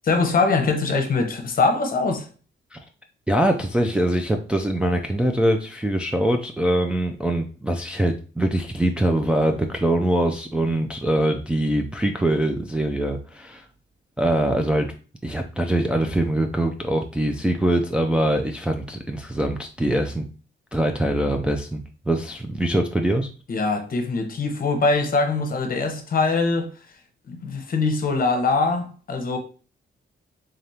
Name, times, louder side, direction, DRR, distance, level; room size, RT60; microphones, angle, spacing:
voice 1, 0.0-2.3 23.5-26.7 27.3-29.4, left 3 dB, 45° left, 0.8 m, -22 dB
voice 2, 3.3-13.6 14.2-14.9 15.2-20.2 20.7-23.3, right 1 dB, 5° right, 0.3 m, -23 dB
3.7 x 3.4 x 2.7 m
wide cardioid pair, 150°, 20 cm